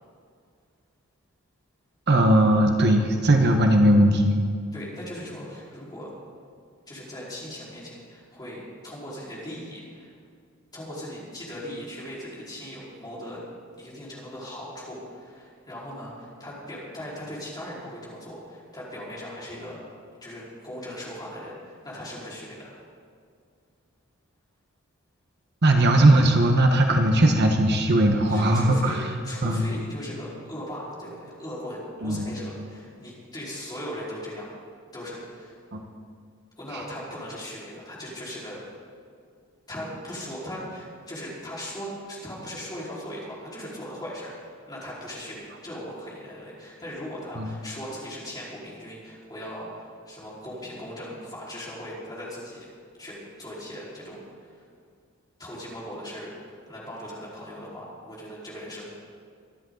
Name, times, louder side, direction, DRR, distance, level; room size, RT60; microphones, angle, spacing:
voice 1, 2.1-4.4 25.6-29.0 29.4-29.6 32.0-32.2 35.7-35.8 36.7-36.8 47.4-47.5, right 1 dB, 50° right, 3 dB, 1.2 m, -19 dB
voice 2, 4.7-6.1 6.9-10.1 10.7-13.4 13.8-19.8 20.2-22.8 28.3-29.0 29.2-34.5 34.9-35.6 36.6-38.6 39.7-52.7 53.0-54.6 55.4-56.3 56.7-58.8, equal, 20° left, -7 dB, 4.7 m, -38 dB
24.5 x 11.0 x 4.0 m, 2.2 s
head